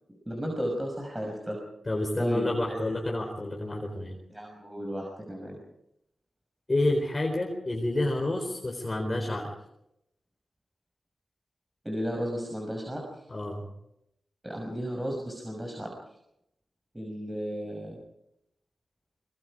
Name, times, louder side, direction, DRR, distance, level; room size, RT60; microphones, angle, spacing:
voice 1, 0.3-1.6 2.2-2.9 4.3-5.6 11.8-13.0 14.4-15.9 16.9-18.0, equal, 15° right, 0 dB, 5.8 m, -34 dB
voice 2, 1.9-4.1 6.7-9.5 13.3-13.7, left 1 dB, 30° left, 1 dB, 4.1 m, -29 dB
25.0 x 22.0 x 4.9 m, 0.82 s
cardioid pair, 55°, 0 cm